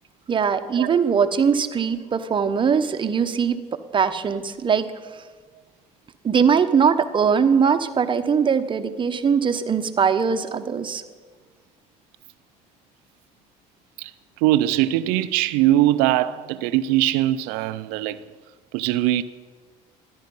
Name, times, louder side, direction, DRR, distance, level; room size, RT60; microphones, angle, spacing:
voice 1, 0.3-3.6 3.9-4.9 6.2-11.0, right 6 dB, 35° right, 0.9 m, -21 dB
voice 2, 14.4-18.2 18.7-19.2, right 14 dB, 85° right, 0.4 m, -21 dB
13.5 x 10.5 x 5.4 m
supercardioid pair, 95°, 15 cm